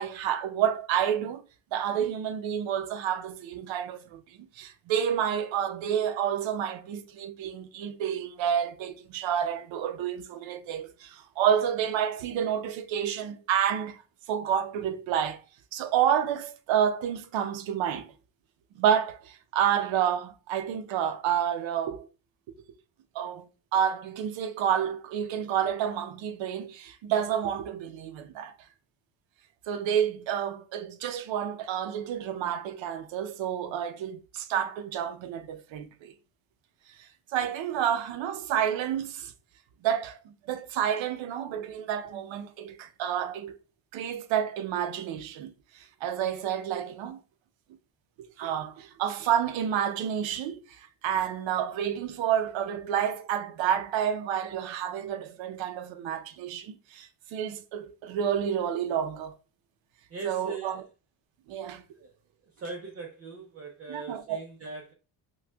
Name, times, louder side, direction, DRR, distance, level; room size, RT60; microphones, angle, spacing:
voice 1, 0.0-1.4 1.7-4.2 4.6-14.0 14.3-15.4 15.7-18.1 18.8-22.1 23.1-28.5 29.7-36.1 37.0-39.3 39.8-43.6 43.9-47.2 48.4-59.3 60.2-60.8 61.5-61.8 63.9-64.4, right 9 dB, 75° right, 0.7 m, -29 dB
voice 2, 60.1-60.9 62.0-62.1 62.6-64.9, right 4 dB, 30° right, 0.5 m, -39 dB
5.8 x 2.3 x 2.2 m
cardioid pair, 145°, 45 cm